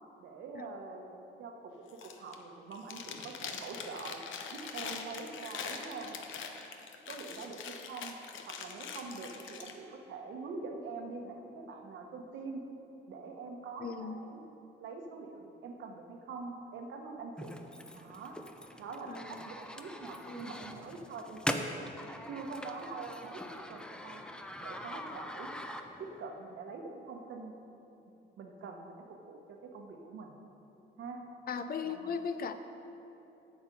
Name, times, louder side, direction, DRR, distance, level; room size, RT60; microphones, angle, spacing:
voice 1, 0.2-4.2 4.5-6.2 7.1-8.2 8.5-12.6 13.1-14.4 14.8-17.6 17.9-18.4 18.8-21.7 22.3-24.2 24.6-25.5 26.0-27.5 28.4-30.4 31.0-31.2 31.8-32.2, right 4 dB, 75° right, 3 dB, 1.1 m, -44 dB
Chewing mastication, 1.9-2.4 2.7-9.7, left 6 dB, 75° left, 0.8 m, -43 dB
voice 2, 13.8-14.3 19.1-19.4 20.3-20.6 31.5-32.5, left 6 dB, 50° left, 9 dB, 0.6 m, -38 dB
sound 1, 17.4-26.2, equal, 5° left, 0.6 m, -42 dB
8.6 x 7.2 x 5.3 m, 2.9 s
cardioid pair, 90°, 20 cm